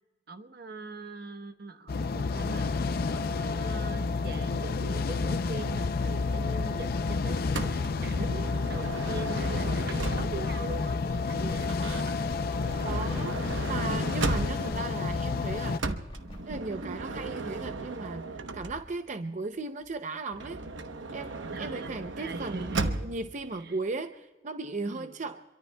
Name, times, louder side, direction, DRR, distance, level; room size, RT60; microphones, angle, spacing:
voice 1, 0.3-11.7 21.5-23.1 23.5-23.7 24.8-25.2, right 3 dB, 55° right, 9 dB, 1.0 m, -42 dB
sound 1, 1.9-15.8, left 4 dB, 50° left, 0.5 m, -30 dB
Motor vehicle (road) / Sliding door, 7.5-10.6 11.6-14.9 15.8-19.1 20.3-23.3, right 3 dB, 85° right, 0.9 m, -36 dB
sound 2, 10.3-16.9, left 1 dB, 30° left, 2.4 m, -48 dB
voice 2, 12.8-13.4 13.6-15.9 16.4-18.3 18.5-20.6 21.1-25.4, right 3 dB, 40° right, 8 dB, 0.6 m, -36 dB
27.5 x 23.0 x 2.2 m, 1.2 s
head